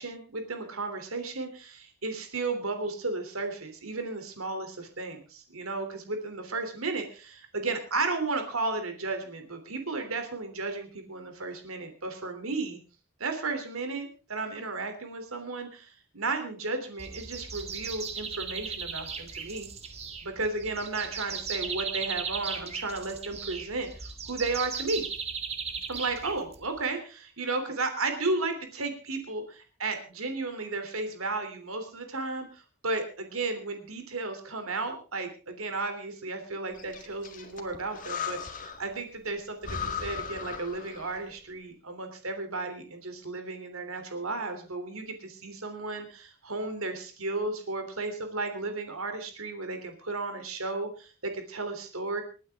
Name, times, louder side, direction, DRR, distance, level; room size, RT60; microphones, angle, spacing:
voice 1, 0.0-12.8 13.2-19.7 20.2-25.0 25.9-52.2, right 3 dB, 75° right, 7 dB, 3.3 m, -34 dB
sound 1, 17.0-26.8, right 5 dB, 30° right, 1.8 m, -37 dB
Breathing, 36.8-38.9 39.3-39.4 39.6-41.3, left 6 dB, 35° left, 1.9 m, -37 dB
28.0 x 9.5 x 3.7 m, 0.35 s
head